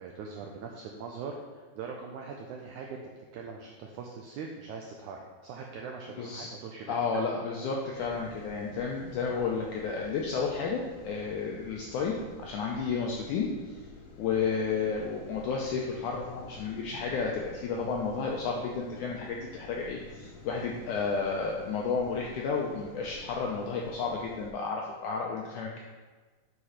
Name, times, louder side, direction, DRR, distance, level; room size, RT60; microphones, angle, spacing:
voice 1, 0.0-3.0 3.3-7.0, right 5 dB, 85° right, 1 dB, 1.7 m, -41 dB
voice 2, 6.2-6.5 6.9-13.5 14.2-25.8, left 5 dB, 85° left, -1 dB, 1.8 m, -32 dB
sound 1, 7.9-24.5, left 3 dB, 65° left, 1.5 m, -49 dB
8.3 x 4.8 x 5.7 m, 1.4 s
omnidirectional pair, 4.3 m